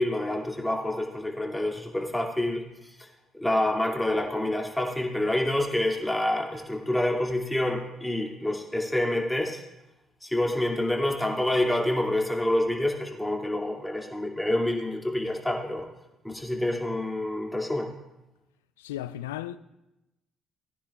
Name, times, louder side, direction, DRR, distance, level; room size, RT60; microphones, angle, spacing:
voice 1, 0.0-2.6 3.4-9.6 10.2-15.9 16.2-17.9, left 1 dB, 5° left, 2.4 m, -27 dB
voice 2, 18.8-19.6, left 13 dB, 85° left, 0.3 m, -35 dB
19.5 x 10.0 x 2.4 m
hypercardioid pair, 50°, 0 cm